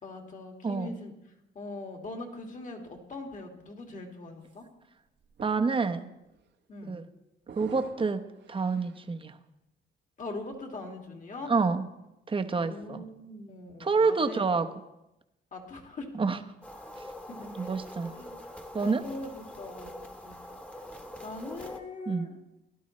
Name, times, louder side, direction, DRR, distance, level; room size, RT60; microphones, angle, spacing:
voice 1, 0.0-1.1 1.5-4.6 6.7-6.9 10.2-11.5 12.6-14.4 15.5-16.1 17.3-17.7 18.2-18.4 18.8-19.9 20.2-20.4 21.2-22.4, left 2 dB, 40° left, 3 dB, 2.3 m, -41 dB
voice 2, 0.6-1.0 5.4-6.1 6.9-7.1 7.6-8.2 8.5-9.4 11.5-11.9 12.3-13.0 13.8-14.7 16.1-16.4 17.5-18.1 18.7-19.0 22.1-22.3, right 4 dB, 25° right, 7 dB, 0.9 m, -28 dB
sound 1, 4.5-4.6 5.2-5.9 6.2-6.5 7.5-9.1, right 6 dB, 60° right, 1.0 m, -48 dB
sound 2, 16.6-21.8, left 1 dB, 5° left, 1.4 m, -44 dB
17.0 x 11.5 x 3.2 m, 0.93 s
cardioid pair, 90°, 20 cm